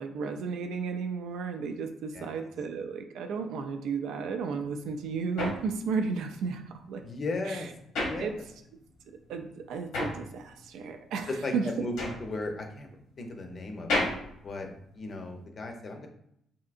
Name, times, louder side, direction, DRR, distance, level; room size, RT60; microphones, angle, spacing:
voice 1, 0.0-7.0 7.4-7.7 8.2-8.4 9.3-11.9, right 5 dB, 85° right, 6 dB, 0.3 m, -33 dB
sound 1, 4.6-8.9 9.2-15.4, left 1 dB, 85° left, 1.0 m, -35 dB
voice 2, 7.0-7.7 8.0-8.3 11.3-12.9 13.2-14.0 14.4-14.7 14.9-16.1, left 2 dB, 45° left, 4 dB, 0.5 m, -36 dB
3.5 x 2.7 x 2.4 m, 0.74 s
cardioid pair, 90°, 0 cm